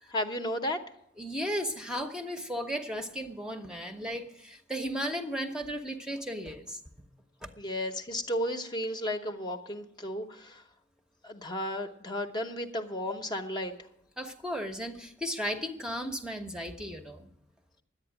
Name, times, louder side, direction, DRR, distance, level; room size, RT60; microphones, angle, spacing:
voice 1, 0.1-0.8 7.6-10.6 11.2-13.7, left 1 dB, 25° left, 5 dB, 0.9 m, -33 dB
voice 2, 1.2-6.8 7.4-7.5 14.2-17.3, equal, 5° right, 5 dB, 0.8 m, -35 dB
11.0 x 8.8 x 8.9 m, 0.81 s
head